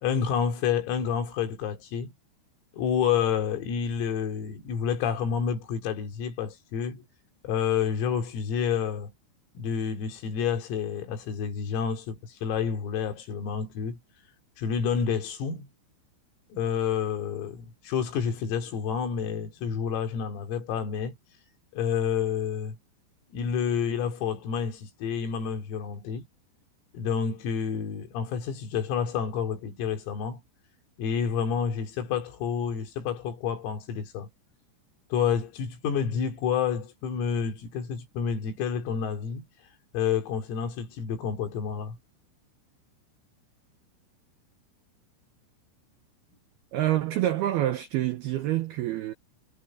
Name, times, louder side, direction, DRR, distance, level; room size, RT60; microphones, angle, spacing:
voice 1, 0.0-2.1 2.7-7.0 7.4-9.1 9.6-14.0 14.6-15.7 16.5-21.2 21.7-22.8 23.3-26.3 26.9-30.4 31.0-34.3 35.1-39.4 39.9-42.0, left 7 dB, 85° left, 6.0 m, -29 dB
voice 2, 46.7-49.1, right 13 dB, 85° right, 2.2 m, -27 dB
omnidirectional pair, 5.9 m